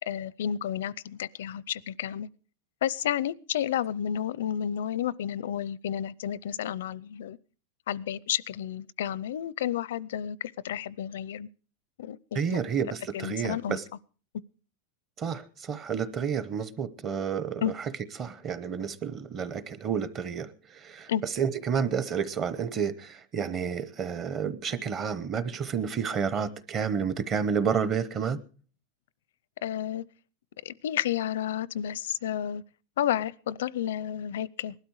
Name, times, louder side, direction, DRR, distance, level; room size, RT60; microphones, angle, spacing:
voice 1, 0.0-2.3 2.8-7.4 7.9-11.5 12.0-12.7 13.1-13.8 17.6-17.7 21.1-21.2 29.6-30.0 30.6-32.6 33.0-34.8, left 10 dB, 85° left, 0.6 m, -31 dB
voice 2, 12.3-13.8 15.2-17.6 18.2-28.4, right 7 dB, 25° right, 0.9 m, -30 dB
19.5 x 12.5 x 4.8 m
supercardioid pair, 165°, 0 cm